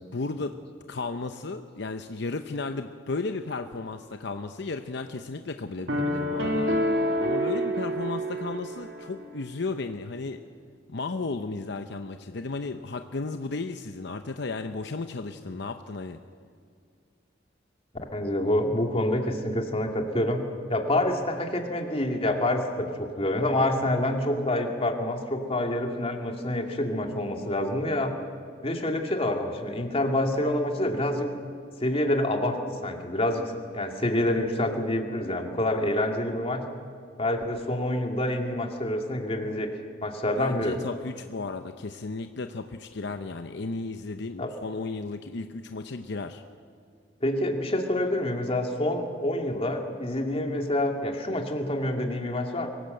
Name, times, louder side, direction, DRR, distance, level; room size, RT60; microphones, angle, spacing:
voice 1, 0.1-0.6 0.9-6.7 7.2-10.4 10.9-16.2 40.4-46.4, left 3 dB, 65° left, 8 dB, 0.8 m, -34 dB
sound 1, 5.9-9.1, equal, 70° right, 2.7 m, -27 dB
voice 2, 18.1-20.4 20.7-28.1 28.6-31.3 31.8-33.4 33.7-36.6 37.2-39.7 40.0-40.8 44.4-44.5 47.2-52.7, left 1 dB, 30° left, 3 dB, 2.2 m, -27 dB
24.0 x 17.5 x 7.9 m, 2.2 s
head